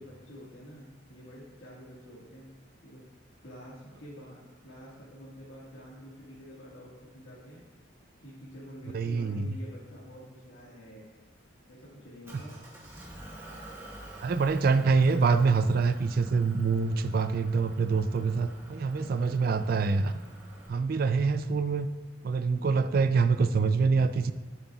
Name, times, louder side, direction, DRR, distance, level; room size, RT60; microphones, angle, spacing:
voice 1, 0.0-2.5 2.8-3.0 3.4-7.6 8.2-11.1 11.7-12.6 19.0-19.5, equal, 90° left, -6 dB, 1.7 m, -48 dB
voice 2, 8.9-9.6 14.2-20.1 20.7-21.9 22.2-24.3, right 4 dB, 50° right, 11 dB, 0.3 m, -25 dB
Motor vehicle (road) / Engine, 12.2-20.7, right 1 dB, 15° right, 1.4 m, -48 dB
11.5 x 8.0 x 2.3 m, 1.4 s
head